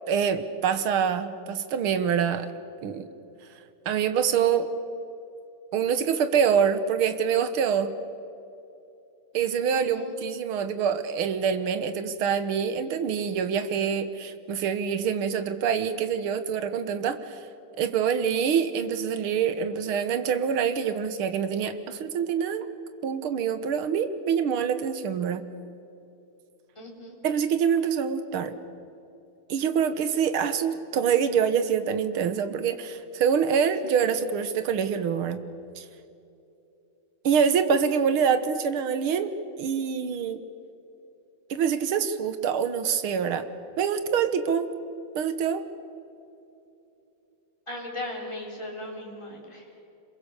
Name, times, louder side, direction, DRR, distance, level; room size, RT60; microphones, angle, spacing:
voice 1, 0.1-2.5 2.8-3.1 3.9-4.7 5.7-8.0 9.3-17.4 17.8-22.7 23.0-25.4 27.2-28.6 29.5-35.4 35.8-35.9 37.2-39.3 39.6-40.4 41.5-43.5 43.8-44.7 45.2-45.6, right 7 dB, 85° right, 11 dB, 2.1 m, -25 dB
voice 2, 9.7-10.1 26.8-27.2 34.0-34.1 47.7-49.6, left 1 dB, 15° left, -2 dB, 4.3 m, -37 dB
26.5 x 22.0 x 6.8 m, 2.9 s
omnidirectional pair, 2.3 m